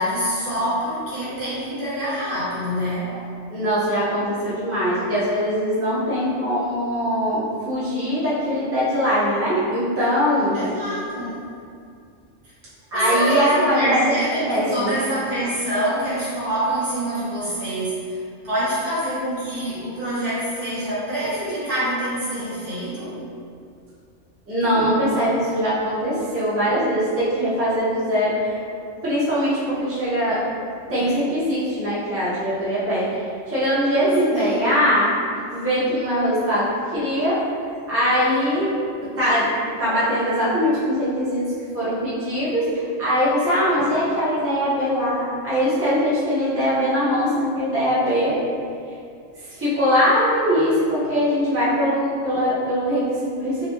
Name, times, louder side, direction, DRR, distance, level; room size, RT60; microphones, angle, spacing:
voice 1, 0.0-3.3 10.5-11.4 12.9-23.2 34.3-34.7, equal, 65° right, -11 dB, 2.0 m, -25 dB
voice 2, 3.5-10.6 12.9-14.2 14.5-14.9 24.5-28.6 29.0-30.4 30.9-35.2 35.5-37.4 37.9-38.7 39.2-39.5 39.8-41.4 41.7-48.4 49.4-53.7, equal, 10° right, -12 dB, 1.0 m, -21 dB
4.2 x 3.1 x 2.9 m, 2.3 s
omnidirectional pair, 1.3 m